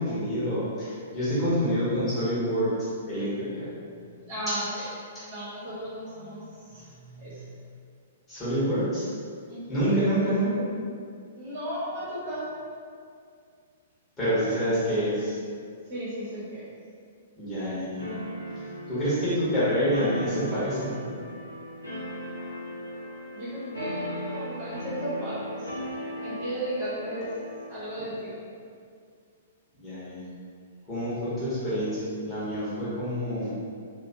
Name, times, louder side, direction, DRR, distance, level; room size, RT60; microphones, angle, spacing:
voice 1, 0.0-3.7 4.5-4.6 5.1-5.2 8.3-9.1 9.7-10.6 14.2-15.4 17.4-18.1 18.9-21.0 29.8-30.2 30.9-33.5, equal, 15° left, -12 dB, 1.0 m, -27 dB
voice 2, 4.3-4.8 5.1-7.5 9.5-9.8 11.3-12.5 15.9-16.7 23.3-25.7 26.2-27.3 27.7-28.4, equal, 40° right, -10 dB, 1.0 m, -35 dB
sound 1, 18.0-28.1, equal, 85° left, 0.6 m, -38 dB
2.5 x 2.2 x 2.7 m, 2.2 s
figure-of-eight pair, 110°, 0 cm